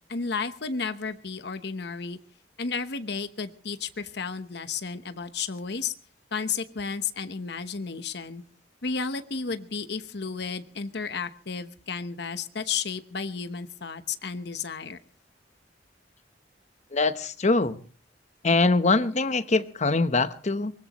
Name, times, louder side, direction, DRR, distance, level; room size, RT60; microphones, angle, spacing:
voice 1, 0.1-2.2 2.6-5.9 6.3-8.4 8.8-15.0, left 5 dB, 65° left, 11 dB, 1.0 m, -32 dB
voice 2, 16.9-17.8 18.4-20.7, left 3 dB, 40° left, 11 dB, 1.0 m, -23 dB
23.5 x 20.0 x 3.1 m, 0.40 s
head